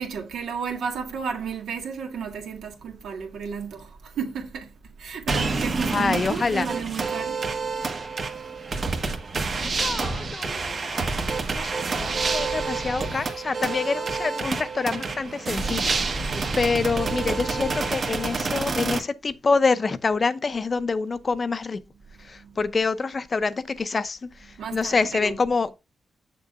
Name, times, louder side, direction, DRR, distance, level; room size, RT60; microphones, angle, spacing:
voice 1, 0.0-7.4 16.2-16.6 22.3-22.6 24.6-25.3, right 6 dB, 85° right, 1.8 m, -33 dB
sound 1, 5.3-19.0, right 4 dB, 50° right, 1.3 m, -28 dB
voice 2, 5.9-6.7 9.6-16.3 16.6-21.8 22.2-25.8, left 4 dB, 40° left, 0.6 m, -26 dB
7.1 x 6.6 x 2.5 m
cardioid pair, 85°, 0 cm